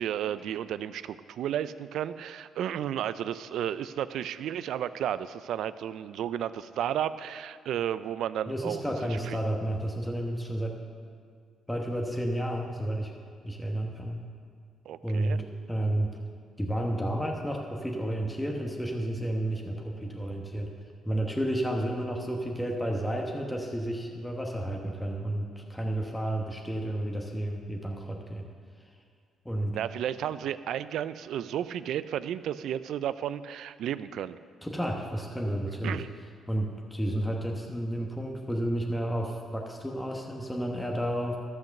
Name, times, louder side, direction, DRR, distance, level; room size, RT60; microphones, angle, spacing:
voice 1, 0.0-9.4 14.9-15.4 29.7-34.4 35.8-36.1, right 10 dB, 75° right, 15 dB, 0.4 m, -33 dB
voice 2, 8.5-10.8 11.7-13.1 13.4-14.2 15.0-16.2 16.6-20.7 21.0-28.5 29.4-29.8 34.6-36.0 36.5-41.4, right 1 dB, 5° left, 0 dB, 1.2 m, -31 dB
13.0 x 5.9 x 6.6 m, 2.1 s
cardioid pair, 90°, 0 cm